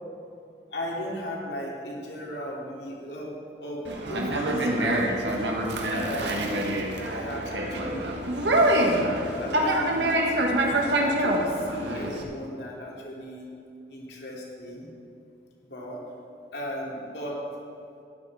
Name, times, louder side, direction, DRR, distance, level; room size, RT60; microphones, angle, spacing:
voice 1, 0.7-5.4 5.9-8.7 9.4-10.4 10.6-13.5 13.9-14.9 15.6-16.0 16.5-17.4, equal, 75° left, -3 dB, 2.7 m, -36 dB
Conversation, 3.8-12.2, right 1 dB, 85° right, 1.6 m, -25 dB
13.0 x 10.5 x 4.8 m, 2.6 s
head